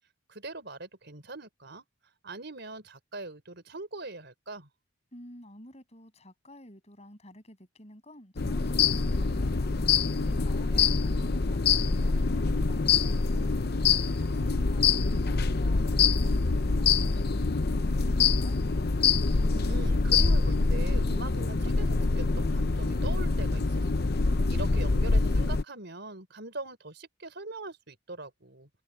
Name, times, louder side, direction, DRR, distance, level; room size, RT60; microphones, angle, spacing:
voice 1, 0.3-1.8 2.2-4.7 10.3-10.9 19.4-28.7, right 2 dB, 55° right, 4.6 m, -42 dB
voice 2, 5.1-9.7 10.4-13.6 14.3-18.6, left 1 dB, 30° left, 7.7 m, -51 dB
sound 1, 8.4-25.6, left 4 dB, 50° left, 0.7 m, -25 dB
head